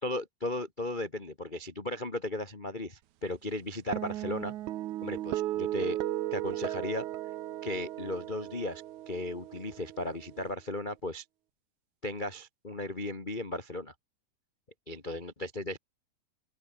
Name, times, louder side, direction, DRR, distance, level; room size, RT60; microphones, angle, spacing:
voice 1, 0.0-4.5 5.0-6.0 6.3-7.1 7.6-11.2 12.0-13.9 14.9-15.8, left 1 dB, 35° left, 0.7 m, -36 dB
sound 1, 3.9-10.5, right 14 dB, 70° right, 2.0 m, -36 dB
open air
omnidirectional pair, 4.5 m